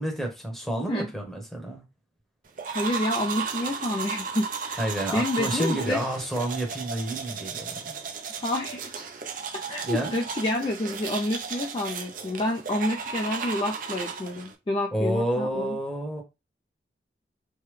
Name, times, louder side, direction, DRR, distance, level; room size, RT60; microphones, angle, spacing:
voice 1, 0.0-1.8 4.8-8.0 9.8-10.2 14.9-16.2, right 1 dB, ahead, 0.9 m, -29 dB
sound 1, 2.6-14.5, right 5 dB, 45° right, 0.5 m, -34 dB
voice 2, 2.7-4.8 5.1-6.0 8.3-9.0 9.7-15.8, left 1 dB, 30° left, 0.3 m, -29 dB
3.3 x 2.2 x 3.2 m
head